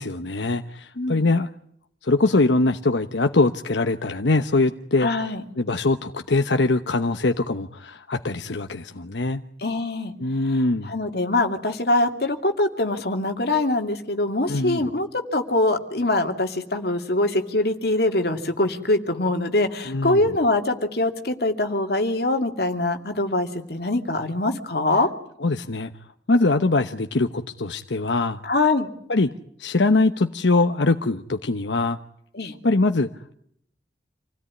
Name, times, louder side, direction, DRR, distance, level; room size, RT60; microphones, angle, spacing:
voice 1, 0.0-1.5 2.0-5.1 5.6-9.4 10.2-10.9 14.5-14.8 19.9-20.3 25.4-25.9 26.3-28.4 29.1-29.3 29.6-32.0 32.6-33.2, left 2 dB, 85° left, 7 dB, 1.0 m, -22 dB
voice 2, 1.0-1.3 5.0-5.4 9.6-10.1 10.8-25.1 28.4-28.9 32.3-32.6, left 2 dB, 60° left, 5 dB, 2.7 m, -23 dB
27.5 x 17.0 x 9.8 m, 0.70 s
head